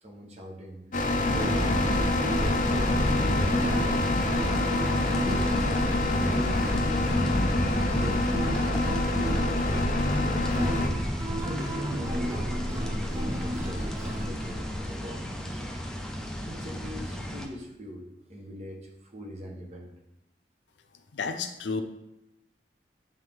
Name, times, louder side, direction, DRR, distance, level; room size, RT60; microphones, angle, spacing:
voice 1, 0.0-1.6 5.2-7.2 7.7-10.6 11.0-15.8 16.5-19.9, equal, 40° right, -1 dB, 1.2 m, -43 dB
sound 1, 0.9-10.9, left 2 dB, 45° left, 0.6 m, -27 dB
sound 2, 0.9-14.8, equal, 20° right, 0.9 m, -33 dB
sound 3, 1.3-17.5, equal, 5° left, 0.6 m, -32 dB
voice 2, 21.2-21.8, left 4 dB, 90° left, 8 dB, 0.6 m, -31 dB
9.1 x 3.6 x 3.6 m, 0.89 s
head